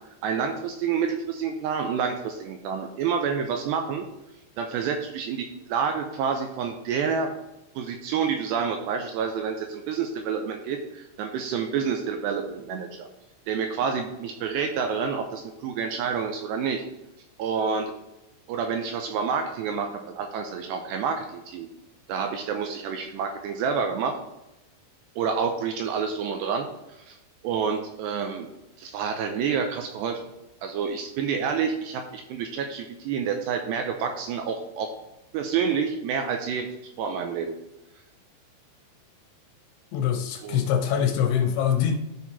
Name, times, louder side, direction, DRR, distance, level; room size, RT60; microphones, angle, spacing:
voice 1, 0.2-4.1 4.6-7.3 7.8-13.1 13.5-16.8 17.4-17.9 18.5-21.7 22.1-24.2 25.2-27.2 27.4-28.5 28.8-30.3 30.6-34.9 35.3-36.7 37.0-37.6 40.4-40.6, right 6 dB, 80° right, 4 dB, 2.5 m, -28 dB
voice 2, 39.9-42.0, left 8 dB, 80° left, 6 dB, 3.0 m, -24 dB
12.5 x 4.7 x 4.1 m, 0.91 s
omnidirectional pair, 5.6 m